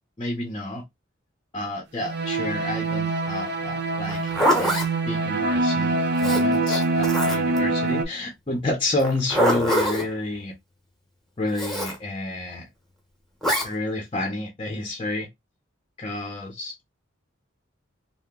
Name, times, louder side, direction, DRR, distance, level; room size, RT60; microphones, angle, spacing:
voice 1, 0.2-0.8 1.5-4.3 4.6-10.6 11.4-12.7 13.6-15.3 16.0-16.8, left 2 dB, 25° left, 0.7 m, -30 dB
sound 1, 2.0-8.0, right 2 dB, 55° right, 0.7 m, -24 dB
Zipper (clothing), 4.0-4.9 6.2-7.6 9.0-10.1 11.5-11.9 13.4-13.7, equal, ahead, 0.9 m, -24 dB
2.8 x 2.1 x 3.6 m
head